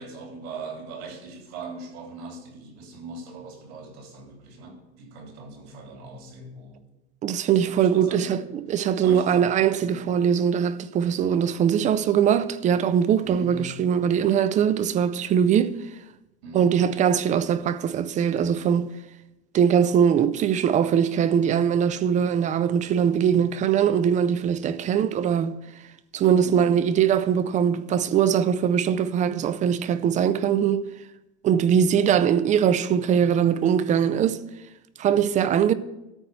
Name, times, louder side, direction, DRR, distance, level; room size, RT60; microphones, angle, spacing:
voice 1, 0.0-6.8 7.7-8.4 9.0-10.0 13.2-13.7 16.4-16.8 24.6-24.9 26.4-26.7, right 3 dB, 90° right, 3.3 m, -40 dB
voice 2, 7.2-15.8 16.5-18.9 19.5-25.6 26.1-30.8 31.4-34.4 35.0-35.7, right 8 dB, 25° right, 0.4 m, -21 dB
13.5 x 4.4 x 7.7 m
supercardioid pair, 145°, 31 cm